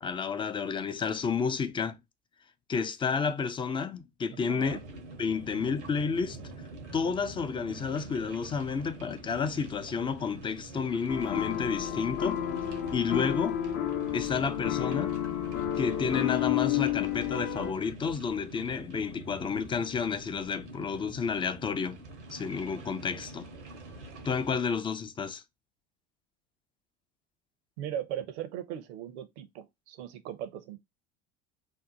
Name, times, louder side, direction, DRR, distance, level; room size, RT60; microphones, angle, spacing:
voice 1, 0.0-2.0 2.7-4.8 5.2-6.4 6.9-12.4 12.9-13.6 14.1-15.1 15.8-22.0 22.3-23.5 24.2-25.4, left 5 dB, 15° left, 0.3 m, -31 dB
voice 2, 4.3-4.8 27.8-30.8, right 10 dB, 70° right, 0.7 m, -38 dB
sound 1, 4.6-24.6, right 2 dB, 90° right, 0.9 m, -46 dB
sound 2, 11.1-17.7, left 11 dB, 50° left, 0.7 m, -31 dB
2.7 x 2.1 x 3.8 m
hypercardioid pair, 80°, 34 cm